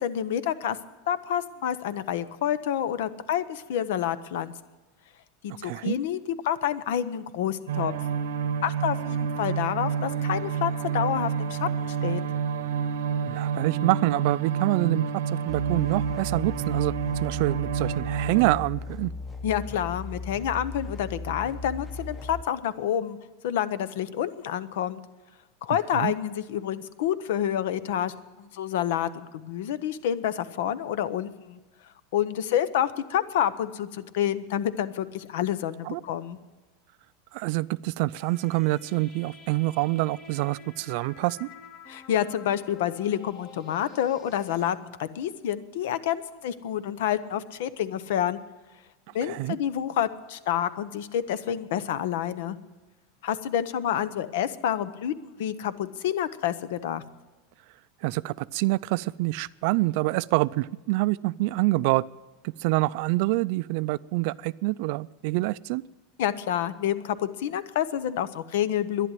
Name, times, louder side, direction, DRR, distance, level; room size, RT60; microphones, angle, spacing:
voice 1, 0.0-0.8 1.1-4.5 5.4-6.2 6.4-7.9 8.6-12.2 19.4-23.2 23.4-25.0 25.6-31.6 32.1-36.4 41.9-48.4 49.1-52.6 53.2-57.0 66.2-69.1, left 10 dB, 75° left, 15 dB, 0.8 m, -28 dB
voice 2, 5.5-6.0 13.2-15.0 15.4-19.1 25.9-26.1 35.8-36.0 37.3-41.5 49.2-49.6 58.0-62.0 62.4-65.8, right 20 dB, 60° right, 18 dB, 0.3 m, -26 dB
sound 1, 7.7-18.5, right 7 dB, 90° right, 0.9 m, -29 dB
sound 2, 15.5-22.4, left 2 dB, 10° left, 0.8 m, -37 dB
sound 3, 38.1-44.7, left 4 dB, 40° left, 1.5 m, -49 dB
11.0 x 11.0 x 9.1 m, 1.2 s
supercardioid pair, 140°, 0 cm